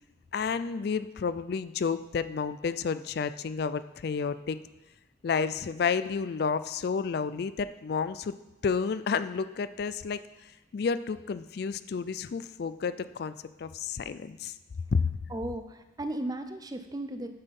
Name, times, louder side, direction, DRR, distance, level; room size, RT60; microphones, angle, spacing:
voice 1, 0.3-4.6 5.2-8.3 8.6-14.5 14.9-15.0, left 5 dB, 55° left, 13 dB, 0.3 m, -31 dB
voice 2, 15.3-17.3, right 1 dB, 20° right, 8 dB, 0.5 m, -35 dB
9.8 x 5.5 x 5.3 m, 1.1 s
head